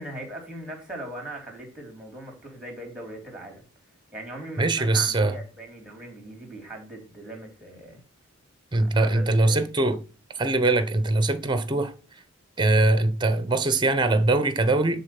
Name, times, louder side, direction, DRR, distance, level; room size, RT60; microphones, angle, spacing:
voice 1, 0.0-3.6 4.1-8.0 8.8-9.6, right 1 dB, 5° right, 3.2 m, -39 dB
voice 2, 4.6-5.3 8.7-10.0 10.4-11.9 12.6-15.0, right 2 dB, 20° right, 0.9 m, -22 dB
10.5 x 4.1 x 6.0 m
head